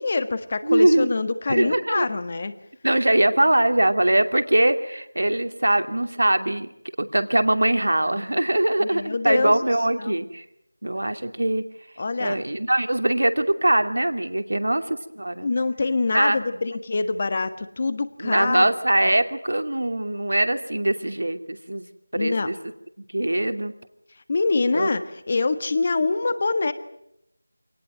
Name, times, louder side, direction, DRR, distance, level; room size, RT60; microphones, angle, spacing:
voice 1, 0.0-2.5 8.8-9.6 10.0-10.1 12.0-12.4 15.4-18.7 19.0-19.1 22.1-22.5 24.3-26.7, left 3 dB, 30° left, 12 dB, 1.6 m, -25 dB
voice 2, 0.6-1.1 1.5-2.1 2.8-6.7 7.0-10.4 10.8-11.6 12.2-15.5 16.1-16.4 18.2-21.8 22.1-22.5 23.1-23.7 24.7-24.9, right 1 dB, 80° right, 8 dB, 2.5 m, -22 dB
26.5 x 19.0 x 9.1 m, 0.82 s
figure-of-eight pair, 175°, 0 cm